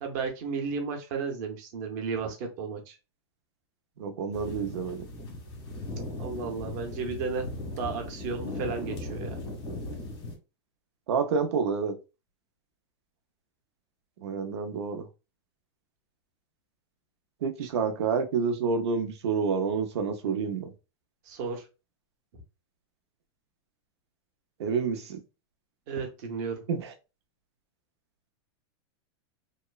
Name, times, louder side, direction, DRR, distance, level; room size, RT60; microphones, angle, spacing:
voice 1, 0.0-3.0 6.2-9.4 17.6-17.7 21.2-21.7 25.9-26.7, right 5 dB, 40° right, 0.7 m, -34 dB
voice 2, 4.0-5.1 11.1-11.9 14.2-15.1 17.4-20.7 24.6-25.2 26.7-26.9, right 5 dB, 85° right, 0.6 m, -28 dB
sound 1, 4.3-10.4, left 1 dB, 90° left, 1.5 m, -38 dB
3.0 x 2.0 x 2.3 m
supercardioid pair, 170°, 14 cm